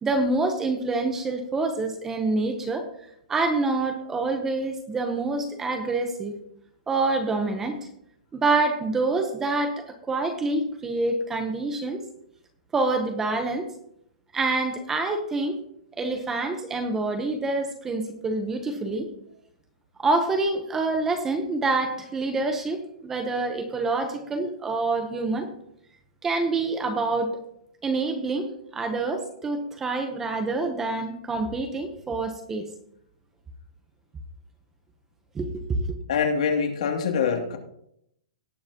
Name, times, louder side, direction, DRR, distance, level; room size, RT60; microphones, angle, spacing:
voice 1, 0.0-2.8 3.3-6.3 6.9-7.8 8.3-12.0 12.7-13.7 14.3-15.6 16.0-19.1 20.0-25.5 26.2-27.4 27.8-28.5 28.7-32.6 35.3-35.9, right 3 dB, 10° right, 6 dB, 0.9 m, -26 dB
voice 2, 36.1-37.6, left 6 dB, 60° left, 2 dB, 2.6 m, -24 dB
18.0 x 7.6 x 3.0 m, 0.74 s
hypercardioid pair, 165°, 4 cm